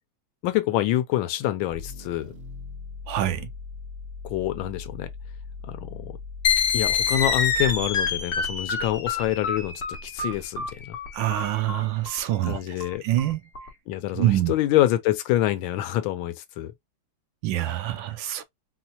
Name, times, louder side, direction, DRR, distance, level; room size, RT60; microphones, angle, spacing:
voice 1, 0.4-2.3 4.2-5.1 5.7-6.2 6.7-9.7 10.0-11.0 12.4-13.0 13.9-16.7, left 13 dB, 80° left, 1.4 m, -26 dB
sound 1, 1.7-7.9, left 4 dB, 55° right, 1.0 m, -39 dB
voice 2, 3.1-3.5 11.1-12.8 13.0-13.4 14.2-14.5 17.4-18.4, right 13 dB, 75° right, 1.2 m, -25 dB
sound 2, 6.4-13.7, left 6 dB, 55° left, 0.6 m, -27 dB
4.3 x 2.1 x 2.7 m
omnidirectional pair, 2.2 m